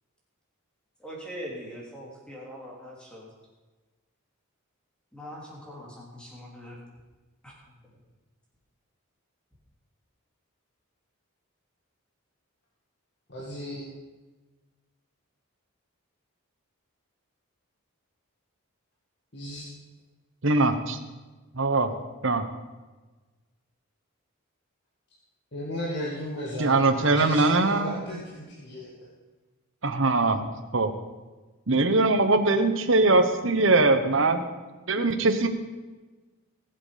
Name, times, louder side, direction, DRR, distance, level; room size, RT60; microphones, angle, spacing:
voice 1, 1.0-3.3 5.1-6.8 7.4-7.8, equal, 5° left, -3 dB, 3.1 m, -42 dB
voice 2, 13.3-13.8 19.3-19.7 25.5-29.1, equal, 50° left, -4 dB, 2.0 m, -35 dB
voice 3, 20.4-21.0 21.5-21.9 22.2-22.4 26.6-28.0 29.8-30.5 30.7-30.9 31.7-34.4 34.9-35.5, right 3 dB, 60° right, 8 dB, 1.1 m, -21 dB
19.5 x 7.8 x 5.1 m, 1.3 s
head